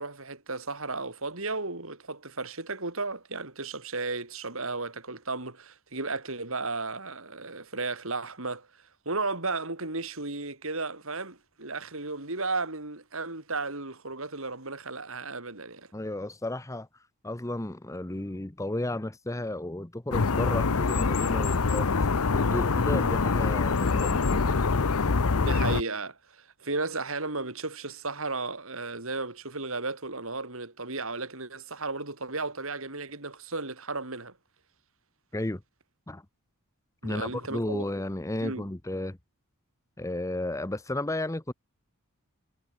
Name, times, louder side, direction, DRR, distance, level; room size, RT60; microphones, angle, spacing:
voice 1, 0.0-8.7 9.1-15.9 25.4-34.3 37.0-37.9 38.4-38.6, right 3 dB, 65° right, 4.3 m, -34 dB
voice 2, 15.9-16.9 17.2-24.6 35.3-35.6 36.1-36.2 37.0-39.2 40.0-41.5, left 1 dB, 15° left, 0.8 m, -33 dB
sound 1, 20.1-25.8, left 4 dB, 80° left, 0.8 m, -25 dB
head